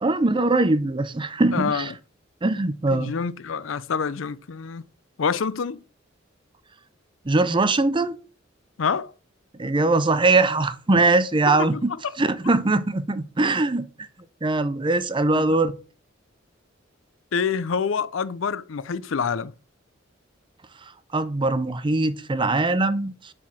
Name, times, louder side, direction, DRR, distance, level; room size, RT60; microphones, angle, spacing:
voice 1, 0.0-1.9 2.4-3.1 7.3-8.2 9.6-11.9 12.2-13.9 14.4-15.7 21.1-23.1, right 2 dB, 25° right, 0.6 m, -21 dB
voice 2, 1.5-1.9 2.9-4.8 5.2-5.8 8.8-9.1 11.5-12.1 15.3-15.5 17.3-19.5, left 6 dB, 80° left, 0.5 m, -27 dB
7.2 x 4.7 x 6.1 m
head